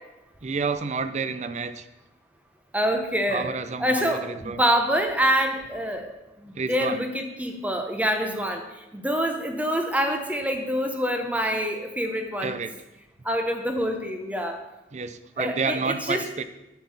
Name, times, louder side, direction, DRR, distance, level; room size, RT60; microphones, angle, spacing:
voice 1, 0.4-1.9 3.3-4.6 6.5-7.1 12.4-12.7 14.9-16.4, right 4 dB, 40° right, 11 dB, 0.5 m, -29 dB
voice 2, 2.7-3.5 3.8-6.1 6.4-8.7 8.9-12.6 13.2-14.6 15.4-16.3, equal, 10° right, 5 dB, 0.9 m, -26 dB
9.3 x 6.8 x 5.5 m, 0.98 s
head